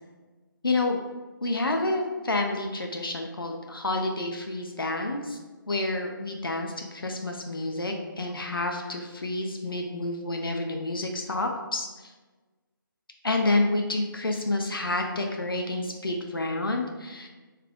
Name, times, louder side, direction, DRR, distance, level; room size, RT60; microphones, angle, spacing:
voice 1, 0.6-1.0 1.4-5.4 5.7-12.1 13.2-17.3, left 2 dB, 75° left, 2 dB, 0.6 m, -29 dB
3.6 x 3.2 x 3.5 m, 1.3 s
figure-of-eight pair, 145°, 12 cm